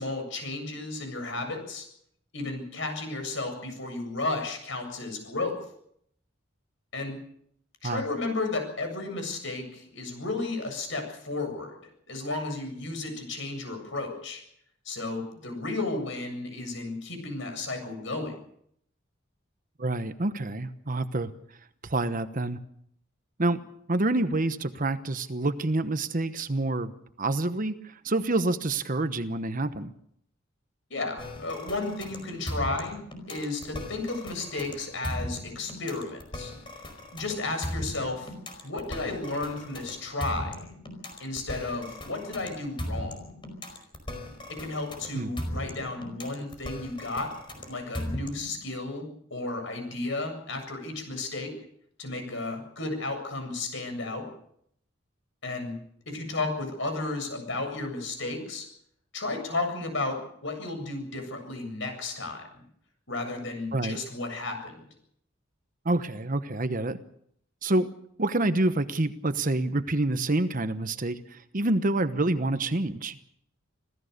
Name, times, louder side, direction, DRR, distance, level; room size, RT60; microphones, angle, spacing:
voice 1, 0.0-1.9 2.3-5.5 6.9-7.2 7.8-11.8 12.1-14.4 14.8-18.3 30.9-33.0 33.3-36.5 37.1-38.3 38.6-40.7 41.2-43.2 44.6-47.3 47.7-51.5 52.0-54.3 55.4-55.7 56.1-58.7 59.1-62.4 63.1-64.8, left 2 dB, 65° left, 6 dB, 7.6 m, -33 dB
voice 2, 19.8-21.3 21.8-22.6 23.4-23.6 23.9-26.9 27.2-29.9 45.1-45.3 63.7-64.0 65.8-67.0 67.6-67.9 68.2-73.2, right 2 dB, 40° right, 11 dB, 1.1 m, -27 dB
sound 1, 31.2-48.6, equal, 25° left, 4.9 m, -38 dB
26.5 x 16.0 x 6.7 m, 0.69 s
head